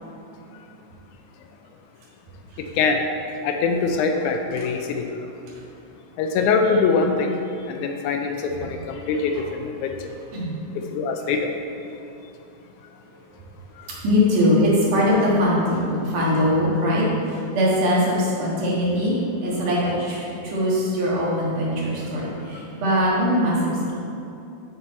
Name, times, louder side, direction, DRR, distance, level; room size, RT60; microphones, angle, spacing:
voice 1, 3.4-5.0 6.2-7.4 7.7-10.0 10.9-11.5 13.8-13.9, left 4 dB, 80° left, 4 dB, 1.9 m, -23 dB
voice 2, 14.0-17.1 17.5-19.2 19.4-23.9, equal, 80° right, -6 dB, 3.1 m, -21 dB
9.4 x 4.6 x 4.2 m, 2.8 s
omnidirectional pair, 3.6 m